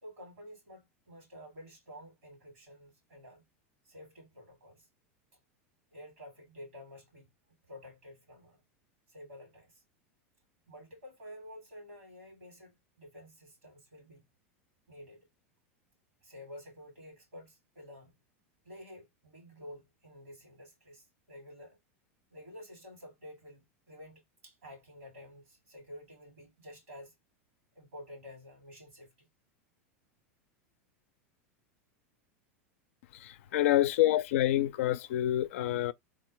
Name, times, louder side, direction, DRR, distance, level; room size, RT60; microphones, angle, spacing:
voice 1, 0.0-3.5 3.8-4.9 5.9-7.3 7.7-8.6 9.1-9.8 10.7-14.2 14.9-15.3 16.2-18.1 18.6-21.8 22.3-27.1 27.7-29.3 33.4-33.6, left 1 dB, 90° right, 2.6 m, -51 dB
voice 2, 33.1-35.9, left 13 dB, 70° left, 0.4 m, -27 dB
3.7 x 2.2 x 3.1 m
hypercardioid pair, 100°, 7 cm